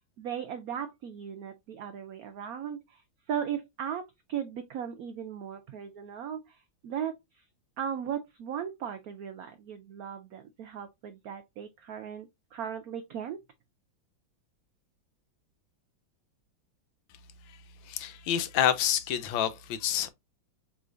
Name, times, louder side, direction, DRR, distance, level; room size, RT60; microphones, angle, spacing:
voice 1, 0.2-7.5 7.8-13.5, right 8 dB, 90° right, 0.7 m, -37 dB
voice 2, 17.9-20.1, left 10 dB, 80° left, 1.4 m, -28 dB
4.9 x 3.3 x 2.4 m
omnidirectional pair, 2.1 m